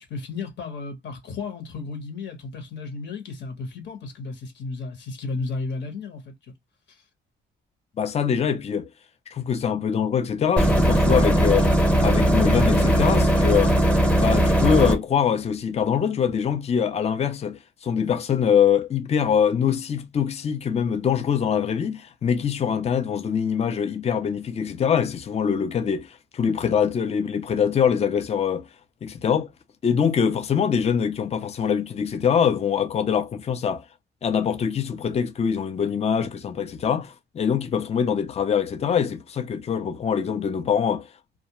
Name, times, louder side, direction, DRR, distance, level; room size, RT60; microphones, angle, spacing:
voice 1, 0.0-6.3 6.9-7.0, left 3 dB, 65° left, 1.2 m, -33 dB
voice 2, 8.0-8.9 9.3-11.7 12.0-13.8 14.2-28.6 29.0-29.5 29.8-33.8 34.2-41.1, left 7 dB, 30° left, 0.5 m, -23 dB
sound 1, 10.6-15.0, right 1 dB, 5° left, 0.9 m, -19 dB
2.4 x 2.1 x 2.9 m
cardioid pair, 90°, 20 cm